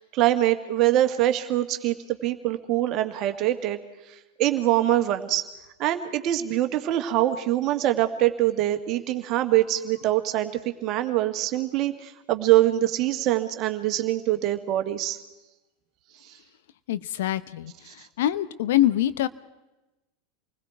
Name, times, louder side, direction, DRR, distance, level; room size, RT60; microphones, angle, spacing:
voice 1, 0.0-3.8 4.1-5.4 5.8-10.5 10.8-15.2 16.2-16.4 17.9-18.1, right 14 dB, 45° right, 8 dB, 1.8 m, -24 dB
voice 2, 16.9-19.3, left 13 dB, 65° left, 15 dB, 0.8 m, -25 dB
28.5 x 20.5 x 4.6 m, 1.0 s
figure-of-eight pair, 85°, 0 cm